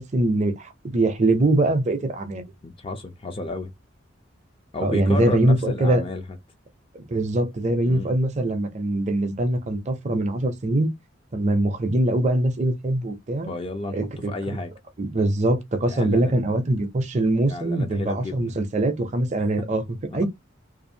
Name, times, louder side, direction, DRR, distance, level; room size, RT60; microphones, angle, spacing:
voice 1, 0.1-2.4 4.8-6.0 6.9-10.9 11.3-13.5 13.9-14.6 15.0-20.3, right 1 dB, 35° right, 0.5 m, -23 dB
voice 2, 2.6-3.7 4.7-6.4 7.8-8.1 13.5-14.7 15.9-16.3 17.5-18.6 19.6-19.7 20.1-20.3, left 2 dB, 30° left, 0.4 m, -32 dB
2.6 x 2.3 x 2.6 m
head